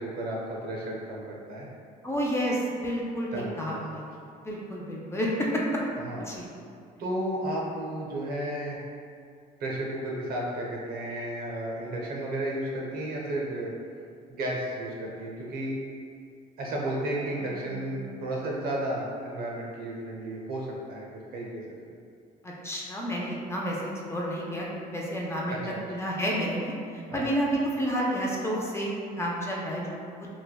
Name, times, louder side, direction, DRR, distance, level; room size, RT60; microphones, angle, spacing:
voice 1, 0.0-1.7 3.3-4.1 6.0-6.3 7.0-8.8 9.6-13.7 14.3-15.8 16.6-21.0 21.3-21.8 25.5-25.8 27.1-27.3, right 1 dB, 65° right, -3 dB, 0.6 m, -33 dB
voice 2, 2.0-4.1 4.4-5.6 6.2-6.5 17.4-17.9 22.4-25.6 25.9-30.3, equal, 15° left, -4 dB, 0.4 m, -30 dB
3.2 x 2.1 x 2.2 m, 2.3 s
cardioid pair, 110°, 17 cm